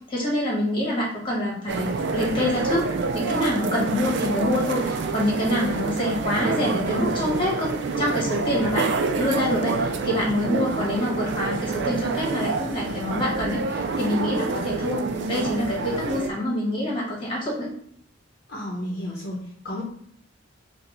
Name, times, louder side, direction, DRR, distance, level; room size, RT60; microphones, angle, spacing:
voice 1, 0.1-2.9 3.1-8.9 9.2-15.0 15.3-17.7, left 1 dB, 25° left, -4 dB, 1.4 m, -26 dB
sound 1, 1.7-16.3, right 4 dB, 55° right, 0.3 m, -27 dB
voice 2, 18.5-19.8, left 1 dB, 50° left, -4 dB, 0.8 m, -32 dB
4.7 x 2.3 x 3.8 m, 0.65 s
head